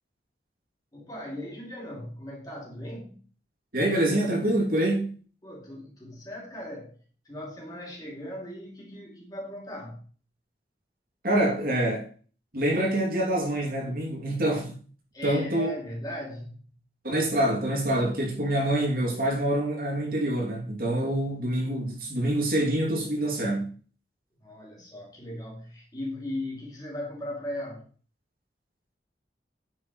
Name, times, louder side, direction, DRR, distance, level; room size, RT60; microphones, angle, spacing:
voice 1, 0.9-3.2 5.4-7.0 7.2-10.0 15.1-16.8 24.4-27.9, left 1 dB, 20° left, 2.9 m, -38 dB
voice 2, 3.7-5.2 11.2-12.1 12.5-14.8 15.2-15.7 17.0-23.7, right 1 dB, 55° right, 3.0 m, -26 dB
9.5 x 7.0 x 3.3 m
head